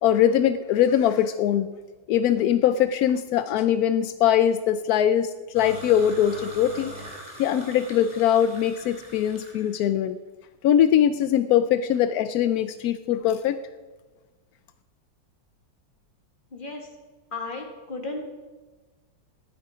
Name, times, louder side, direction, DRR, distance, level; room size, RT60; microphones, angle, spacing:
voice 1, 0.0-1.7 2.1-6.9 7.4-10.2 10.6-13.6, left 10 dB, 80° left, 12 dB, 0.8 m, -22 dB
sound 1, 5.5-9.7, right 1 dB, 20° right, 3.1 m, -42 dB
voice 2, 16.5-16.8 17.3-18.3, left 3 dB, 25° left, 2 dB, 2.1 m, -34 dB
14.5 x 11.0 x 4.9 m, 1.3 s
omnidirectional pair, 2.1 m